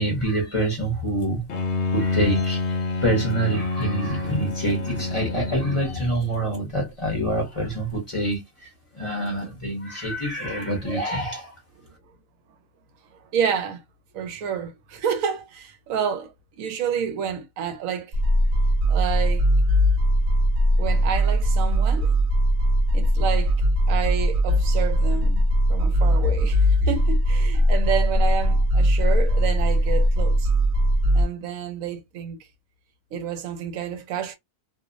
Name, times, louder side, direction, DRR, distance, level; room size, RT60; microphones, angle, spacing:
voice 1, 0.0-1.4 1.9-8.7 8.9-11.5, right 1 dB, 30° left, 0.6 m, -26 dB
Bowed string instrument, 1.5-6.4, left 3 dB, 65° left, 0.8 m, -27 dB
voice 2, 13.2-13.8 14.1-18.1 18.9-19.4 20.8-22.1 22.9-23.6 23.9-30.5 31.1-32.4 33.1-34.4, right 7 dB, 85° right, 1.0 m, -29 dB
sound 1, 18.1-31.2, equal, 65° right, 0.8 m, -20 dB
2.5 x 2.0 x 2.4 m
omnidirectional pair, 1.4 m